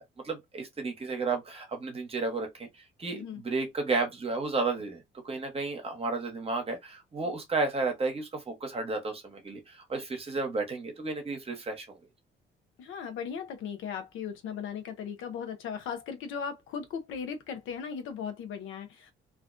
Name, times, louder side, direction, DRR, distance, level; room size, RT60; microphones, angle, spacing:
voice 1, 0.2-2.7 3.0-12.0, right 3 dB, 30° right, 0.9 m, -32 dB
voice 2, 3.1-3.4 12.8-19.1, left 7 dB, 85° left, 0.6 m, -37 dB
2.4 x 2.1 x 2.4 m
cardioid pair, 90°, 20 cm